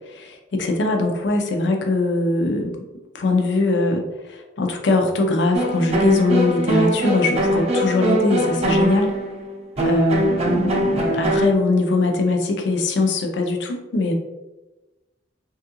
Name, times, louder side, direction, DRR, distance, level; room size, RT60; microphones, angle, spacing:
voice 1, 0.1-2.7 3.1-9.1 9.8-14.1, left 2 dB, 75° left, 3 dB, 0.5 m, -21 dB
sound 1, 5.5-11.5, right 1 dB, 35° right, 0.5 m, -21 dB
3.4 x 2.3 x 2.8 m, 1.1 s
head